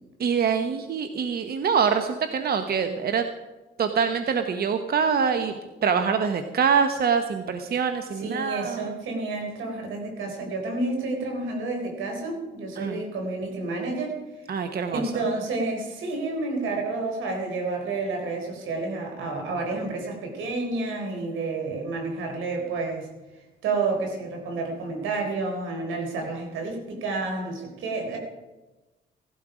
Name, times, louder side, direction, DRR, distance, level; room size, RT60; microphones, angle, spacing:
voice 1, 0.2-3.2 3.8-5.5 5.8-8.9 12.8-13.0 14.5-15.0, right 6 dB, 50° right, 7 dB, 1.1 m, -24 dB
voice 2, 8.2-14.2 14.9-23.1 23.6-28.2, right 3 dB, 85° right, 3 dB, 4.0 m, -30 dB
17.0 x 12.0 x 5.0 m, 1.1 s
cardioid pair, 90°, 20 cm